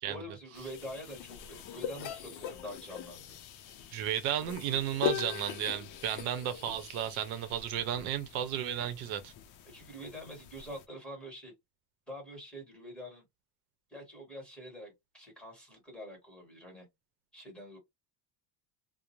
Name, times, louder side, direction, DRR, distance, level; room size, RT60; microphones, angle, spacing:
voice 1, 0.0-3.3 9.7-11.5 12.1-13.2 13.9-16.9 17.3-17.8, equal, ahead, 1.3 m, -46 dB
sound 1, 0.5-10.8, left 10 dB, 45° left, 0.4 m, -42 dB
voice 2, 3.9-9.3, right 10 dB, 85° right, 0.7 m, -33 dB
2.5 x 2.1 x 2.9 m
cardioid pair, 155°, 46 cm